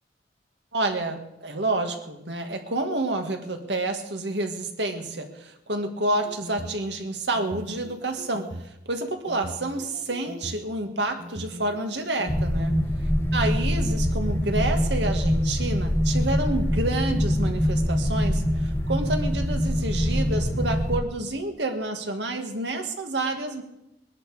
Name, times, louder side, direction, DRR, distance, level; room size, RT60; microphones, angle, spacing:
voice 1, 0.7-12.7 13.3-23.6, right 2 dB, 80° right, 5 dB, 2.0 m, -29 dB
sound 1, 6.1-6.8 7.3-8.7 9.3-10.6 11.2-12.5, right 1 dB, 40° right, 0.9 m, -39 dB
sound 2, 12.3-21.0, equal, 15° left, 1.0 m, -24 dB
21.5 x 11.0 x 5.0 m, 0.84 s
head